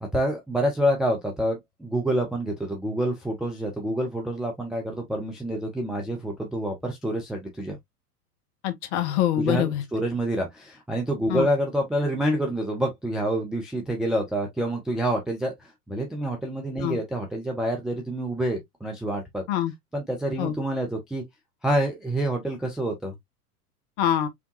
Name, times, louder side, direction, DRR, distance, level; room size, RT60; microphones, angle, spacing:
voice 1, 0.0-7.8 9.4-19.4 19.9-21.2 21.6-23.1, right 1 dB, ahead, 0.3 m, -27 dB
voice 2, 8.6-9.8 11.3-11.5 16.8-17.0 19.5-19.7 20.4-20.5 24.0-24.3, left 11 dB, 45° left, 1.2 m, -24 dB
4.7 x 3.3 x 2.5 m
figure-of-eight pair, 95°, 46 cm